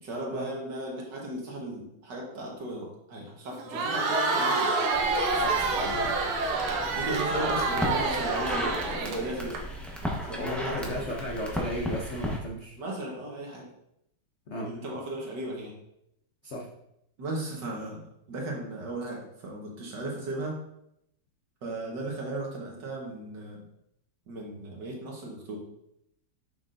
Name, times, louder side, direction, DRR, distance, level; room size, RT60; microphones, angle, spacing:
voice 1, 0.0-4.8 6.9-9.6 10.0-11.0 12.8-13.7 14.6-15.8 17.2-20.6 21.6-23.6 24.3-25.6, right 2 dB, 60° right, -2 dB, 2.0 m, -36 dB
Crowd, 3.6-9.6, right 3 dB, 85° right, 1.7 m, -27 dB
sound 1, 4.9-12.4, left 1 dB, ahead, 0.4 m, -36 dB
voice 2, 5.3-6.1 10.4-12.8 14.5-14.7 16.4-16.7, equal, 70° left, -1 dB, 0.6 m, -35 dB
7.3 x 5.8 x 2.6 m, 0.79 s
omnidirectional pair, 2.3 m